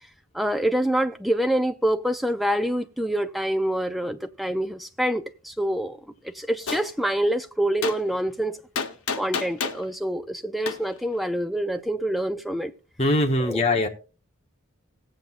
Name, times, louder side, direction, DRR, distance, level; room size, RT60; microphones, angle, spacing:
voice 1, 0.3-6.0 6.3-8.6 9.1-12.7 13.4-13.6, right 1 dB, ahead, 0.4 m, -26 dB
Gunshot gunfire, 6.7-6.8 7.8-8.0 8.7-9.8 10.7-10.8, left 5 dB, 80° left, 1.0 m, -28 dB
voice 2, 13.0-13.9, left 1 dB, 30° left, 0.9 m, -21 dB
18.0 x 7.6 x 2.4 m
head